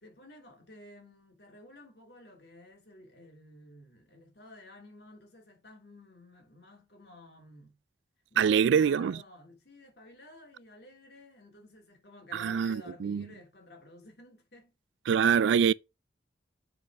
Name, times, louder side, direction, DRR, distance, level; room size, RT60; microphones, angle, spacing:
voice 1, 0.0-7.8 8.3-14.7, left 1 dB, 60° left, 2.7 m, -53 dB
voice 2, 8.4-9.2 12.3-13.2 15.1-15.7, right 7 dB, 85° right, 0.3 m, -24 dB
7.6 x 4.2 x 4.7 m
head